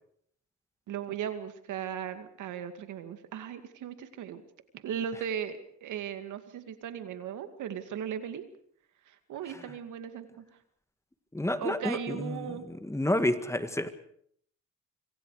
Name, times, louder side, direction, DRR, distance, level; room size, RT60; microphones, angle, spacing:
voice 1, 0.9-4.4 4.7-8.4 9.1-10.4 11.6-12.7, right 8 dB, 80° right, 9 dB, 2.3 m, -37 dB
voice 2, 11.3-13.9, left 1 dB, 10° left, 10 dB, 1.9 m, -30 dB
26.0 x 25.0 x 5.0 m, 0.64 s
cardioid pair, 90°, 30 cm